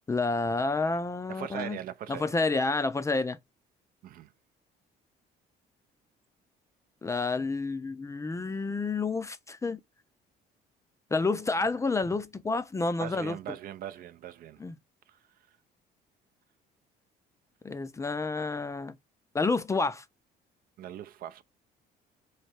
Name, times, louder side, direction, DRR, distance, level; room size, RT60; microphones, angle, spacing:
voice 1, 0.1-1.8 2.1-3.4 7.0-9.8 11.1-13.4 14.6-14.7 17.6-19.0 19.3-20.0, left 3 dB, 15° left, 0.4 m, -29 dB
voice 2, 1.3-2.3 4.0-4.3 13.0-14.6 15.1-15.2 20.8-21.4, right 11 dB, 60° right, 0.5 m, -40 dB
3.2 x 2.7 x 4.3 m
cardioid pair, 110°, 17 cm